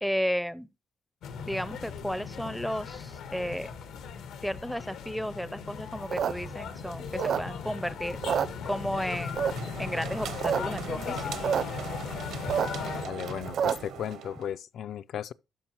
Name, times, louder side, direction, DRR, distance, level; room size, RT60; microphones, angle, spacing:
voice 1, 0.0-0.7 1.4-3.7 4.4-8.2 8.7-9.5 9.8-11.2, equal, ahead, 0.4 m, -33 dB
sound 1, 1.2-13.1, left 7 dB, 90° left, 1.4 m, -38 dB
sound 2, 6.0-7.8 8.1-9.0 9.4-9.8 10.2-10.6 10.8-10.9 11.1-11.6 12.0-14.0, right 7 dB, 55° right, 0.5 m, -28 dB
sound 3, 9.1-14.6, right 8 dB, 75° right, 0.9 m, -41 dB
voice 2, 12.8-15.3, left 10 dB, 60° left, 0.4 m, -36 dB
12.5 x 5.2 x 2.9 m
cardioid pair, 130°, 0 cm